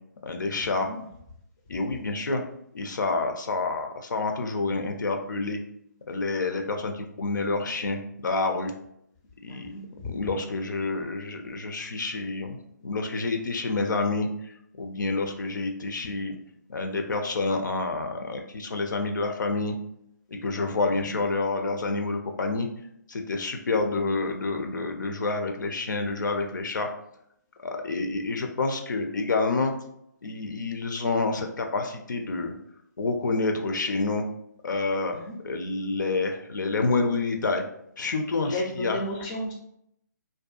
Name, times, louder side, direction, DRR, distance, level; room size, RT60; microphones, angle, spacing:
voice 1, 0.2-0.9 1.7-2.4 2.7-5.6 6.1-8.7 9.4-9.7 10.0-16.3 16.7-19.7 20.4-22.7 23.1-26.9 27.6-29.7 30.2-32.5 33.0-34.2 34.6-37.6 38.0-39.0, left 3 dB, 75° left, 4 dB, 0.4 m, -28 dB
voice 2, 9.5-9.8 21.0-21.2 35.1-35.4 38.4-39.5, left 1 dB, 15° left, -2 dB, 0.4 m, -33 dB
2.6 x 2.2 x 2.3 m, 0.74 s
hypercardioid pair, 155°, 10 cm